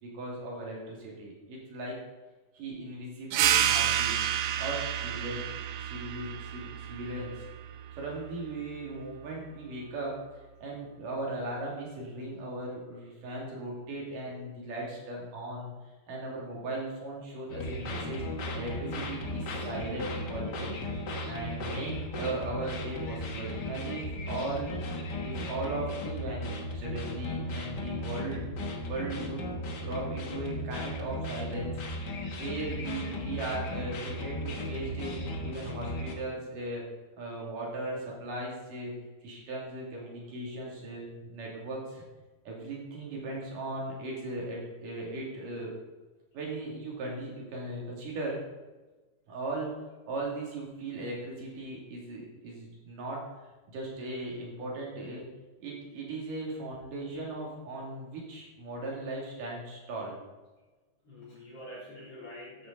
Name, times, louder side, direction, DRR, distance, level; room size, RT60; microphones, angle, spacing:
voice 1, 0.0-2.0 2.5-4.1 4.6-5.5 5.8-7.3 7.9-10.1 10.6-15.7 16.1-18.2 18.5-20.8 21.3-24.7 25.2-29.4 29.8-31.9 32.3-35.1 35.4-36.8 37.2-38.9 39.2-42.0 42.5-45.8 46.3-48.4 49.3-49.7 50.1-53.2 53.7-55.2 55.6-60.1, right 2 dB, 70° right, -3 dB, 4.1 m, -38 dB
sound 1, 3.3-8.5, right 10 dB, 90° right, 2.4 m, -30 dB
sound 2, 17.5-36.2, left 1 dB, 80° left, 0.9 m, -36 dB
voice 2, 40.0-40.7 61.0-62.7, left 1 dB, 45° left, -5 dB, 4.1 m, -47 dB
13.0 x 8.6 x 4.0 m, 1.2 s
omnidirectional pair, 4.0 m